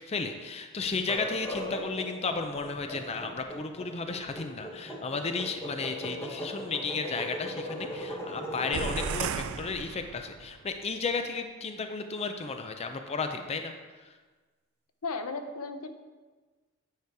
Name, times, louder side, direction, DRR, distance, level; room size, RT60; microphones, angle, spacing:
voice 1, 0.1-13.7, left 4 dB, 30° left, 6 dB, 0.5 m, -33 dB
sound 1, 1.0-9.2, equal, 10° left, 1.3 m, -38 dB
sound 2, 8.7-10.6, right 6 dB, 70° right, 0.4 m, -34 dB
voice 2, 15.0-15.9, left 3 dB, 85° left, 7 dB, 0.7 m, -35 dB
9.3 x 5.0 x 4.7 m, 1.3 s
head